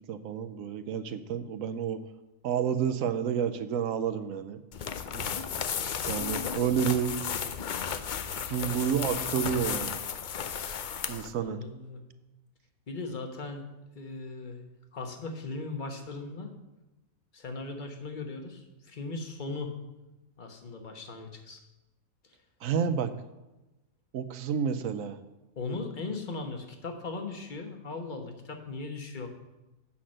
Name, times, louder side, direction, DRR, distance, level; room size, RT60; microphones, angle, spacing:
voice 1, 0.1-2.0 2.4-4.6 5.1-5.3 6.1-7.2 8.5-10.0 11.1-11.6 22.6-23.1 24.1-25.2, right 8 dB, 75° right, 11 dB, 1.0 m, -30 dB
sound 1, 4.7-11.3, left 7 dB, 75° left, 0.4 m, -34 dB
voice 2, 11.4-12.0 12.9-13.7 13.9-14.6 14.9-16.5 17.3-19.7 20.4-21.6 25.6-29.3, left 3 dB, 35° left, 4 dB, 1.2 m, -38 dB
8.7 x 5.8 x 6.3 m, 1.0 s
omnidirectional pair, 1.5 m